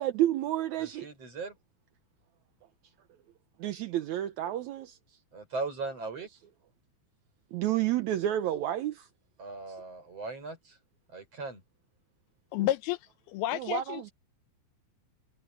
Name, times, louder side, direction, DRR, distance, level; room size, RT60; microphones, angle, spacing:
voice 1, 0.0-1.1 3.6-5.0 7.5-9.1 13.5-14.1, right 12 dB, 80° right, 1.7 m, -30 dB
voice 2, 0.8-1.6 5.3-6.3 9.4-10.7 11.1-11.6, right 3 dB, 40° right, 7.5 m, -38 dB
voice 3, 12.5-13.0 13.3-14.1, left 14 dB, 85° left, 2.8 m, -30 dB
omnidirectional pair, 4.4 m